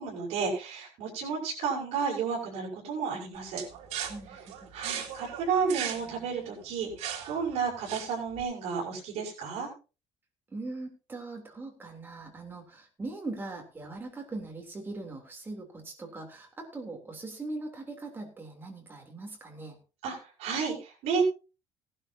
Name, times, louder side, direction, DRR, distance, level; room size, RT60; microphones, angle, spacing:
voice 1, 0.0-3.6 4.7-9.7 20.0-21.2, right 5 dB, 70° right, -4 dB, 6.1 m, -32 dB
sound 1, 3.6-8.4, right 9 dB, 90° right, 2.4 m, -38 dB
voice 2, 4.1-4.7 10.5-19.8, right 2 dB, 20° right, 2 dB, 3.3 m, -41 dB
17.5 x 12.0 x 2.8 m, 0.33 s
cardioid pair, 155°, 11 cm